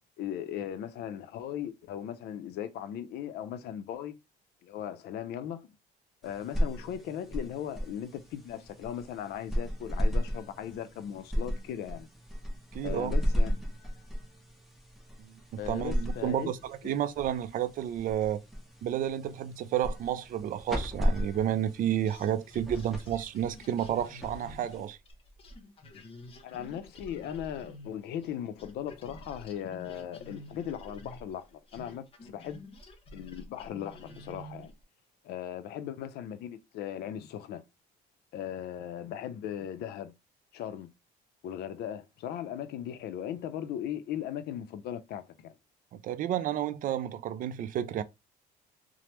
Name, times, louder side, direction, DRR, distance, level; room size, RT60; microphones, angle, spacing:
voice 1, 0.2-4.1 4.6-5.7 6.2-12.1 12.8-13.5 15.6-16.5 16.8-17.0 25.9-26.0 26.4-32.6 33.1-34.7 35.2-37.6 38.3-40.1 40.5-40.9 41.4-45.5, left 10 dB, 70° left, 0.5 m, -38 dB
sound 1, 6.2-25.1, equal, ahead, 0.8 m, -35 dB
voice 2, 12.7-13.1 15.2-15.4 15.7-18.4 18.8-25.0 45.9-48.0, right 10 dB, 55° right, 0.4 m, -31 dB
sound 2, 22.0-28.3 28.6-34.8, left 1 dB, 35° left, 0.7 m, -49 dB
3.2 x 2.0 x 2.9 m
cardioid pair, 110°, 17 cm